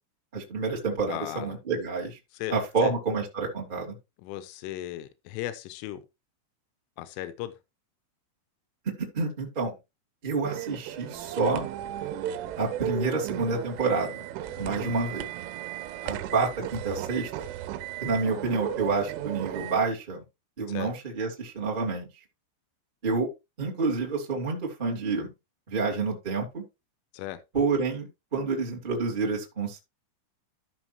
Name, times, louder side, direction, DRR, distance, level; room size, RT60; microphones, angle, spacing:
voice 1, 0.3-2.2 2.5-3.9 9.0-9.7 10.2-11.7 12.6-14.3 14.6-15.2 16.0-17.4 18.0-20.2 20.6-22.1 23.0-23.3 23.6-25.3 25.7-26.6 27.5-29.8, right 4 dB, 25° right, 1.1 m, -28 dB
voice 2, 1.1-1.6 2.3-2.5 2.8-2.9 4.2-6.0 7.0-7.5 14.6-15.0 20.7-20.9 27.1-27.4, left 14 dB, 85° left, 3.3 m, -36 dB
sound 1, 10.4-19.8, right 12 dB, 80° right, 3.3 m, -35 dB
14.0 x 6.1 x 3.0 m
omnidirectional pair, 5.7 m